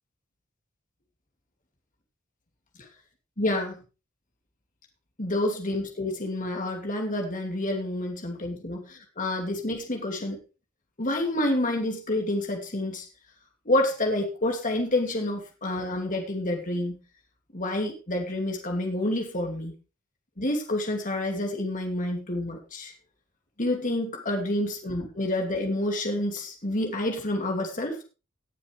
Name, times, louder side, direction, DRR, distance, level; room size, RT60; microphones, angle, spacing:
voice 1, 3.4-3.8 5.2-10.4 11.0-13.1 13.7-17.0 17.5-19.7 20.4-22.9 23.6-28.0, left 1 dB, 40° left, 2 dB, 2.9 m, -28 dB
19.0 x 7.3 x 3.5 m, 0.31 s
head